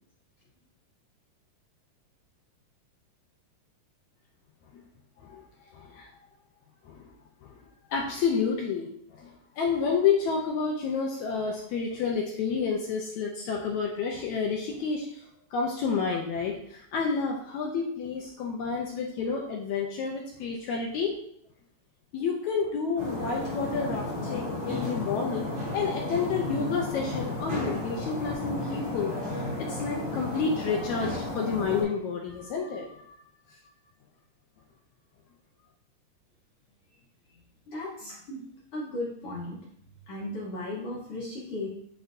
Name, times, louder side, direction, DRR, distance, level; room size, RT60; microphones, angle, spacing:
voice 1, 5.7-6.1 6.9-7.1 7.4-7.5 7.9-15.2 15.5-21.2 22.1-33.2 33.5-33.6, left 5 dB, 80° left, 0 dB, 1.7 m, -30 dB
sound 1, 23.0-31.8, left 2 dB, 80° right, 4.4 m, -33 dB
voice 2, 37.3-38.4 38.7-39.6 39.8-41.7, left 1 dB, 60° left, -5 dB, 1.6 m, -36 dB
9.9 x 3.9 x 2.6 m, 0.69 s
omnidirectional pair, 3.9 m